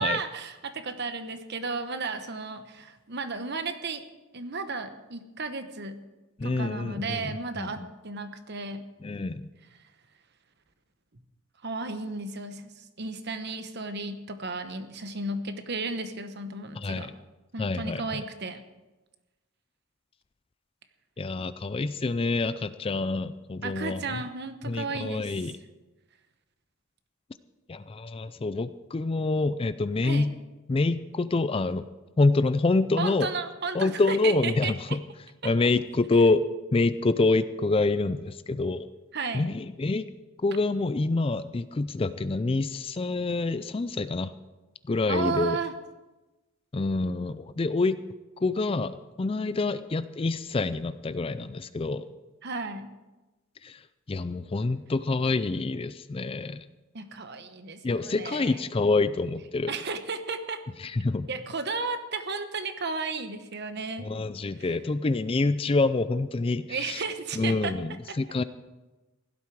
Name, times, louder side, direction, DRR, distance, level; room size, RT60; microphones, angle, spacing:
voice 1, 0.0-4.0 4.3-6.0 6.4-8.8 11.6-17.1 17.5-18.6 23.6-25.5 30.0-30.3 33.0-35.0 39.1-39.5 45.1-45.7 52.4-52.9 56.9-58.6 59.7-60.6 61.3-64.1 64.6-64.8 66.7-67.7 68.1-68.2, right 4 dB, 50° right, 9 dB, 1.0 m, -34 dB
voice 2, 6.4-7.9 9.0-9.5 16.8-17.1 17.6-18.2 21.2-24.2 24.7-25.6 27.7-30.3 30.7-31.9 32.2-33.3 33.7-35.0 35.4-36.4 36.7-38.9 39.3-40.1 40.4-44.3 44.9-45.6 46.7-48.0 48.4-52.0 53.6-53.8 54.1-56.6 57.8-59.7 60.8-61.3 64.0-67.0 67.4-68.4, left 3 dB, 25° left, 13 dB, 0.4 m, -27 dB
16.0 x 12.0 x 4.7 m, 1.1 s
head